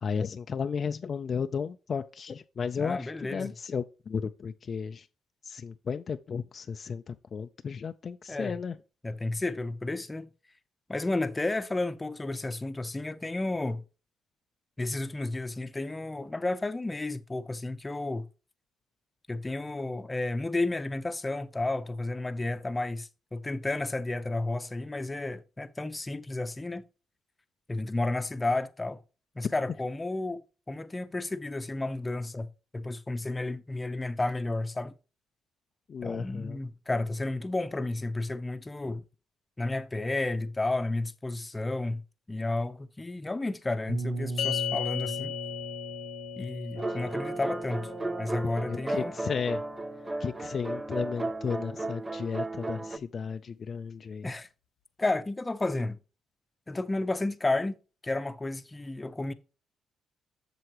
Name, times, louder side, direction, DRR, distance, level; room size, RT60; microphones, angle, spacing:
voice 1, 0.0-5.1 5.4-8.8 35.9-36.6 46.9-47.0 48.7-49.6 50.2-54.3, left 6 dB, 45° left, 0.4 m, -34 dB
voice 2, 2.8-3.5 8.3-8.5 9.0-10.3 10.9-13.8 14.8-18.3 19.3-26.9 27.7-29.0 29.4-30.4 30.7-32.5 32.7-34.9 36.0-39.0 39.6-42.0 42.3-45.3 46.4-47.9 48.2-49.1 54.2-54.5 55.0-56.0 56.7-57.8 58.0-59.3, left 2 dB, 20° left, 0.7 m, -32 dB
sound 1, 43.9-49.7, right 2 dB, 85° right, 1.9 m, -39 dB
sound 2, 44.4-50.9, left 13 dB, 75° left, 1.1 m, -38 dB
sound 3, 46.8-53.0, right 2 dB, 20° right, 0.5 m, -34 dB
7.8 x 6.9 x 3.0 m
cardioid pair, 90°, 0 cm